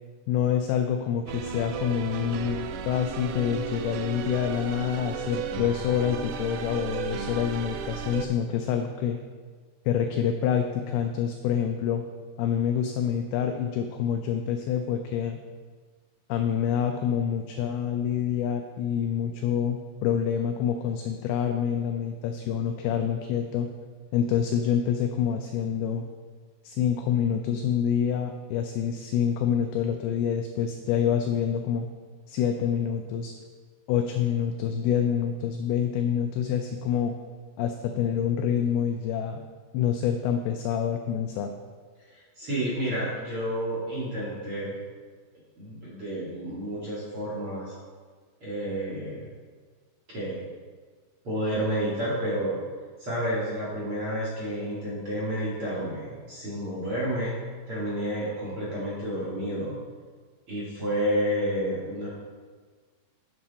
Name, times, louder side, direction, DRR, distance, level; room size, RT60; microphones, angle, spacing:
voice 1, 0.3-9.2 9.9-12.0 12.4-15.4 16.3-23.7 24.1-26.1 26.6-31.9 32.3-33.3 33.9-37.2 37.6-39.4 39.7-41.5, left 8 dB, 85° left, 5 dB, 2.2 m, -27 dB
sound 1, 1.3-8.3, right 5 dB, 90° right, 2.8 m, -34 dB
voice 2, 42.1-44.8 45.6-47.7 48.4-49.3 50.1-50.4 51.2-52.6 53.0-57.4 57.7-59.8 60.5-62.1, equal, 40° right, -8 dB, 2.1 m, -30 dB
9.1 x 7.2 x 4.1 m, 1.5 s
omnidirectional pair, 5.0 m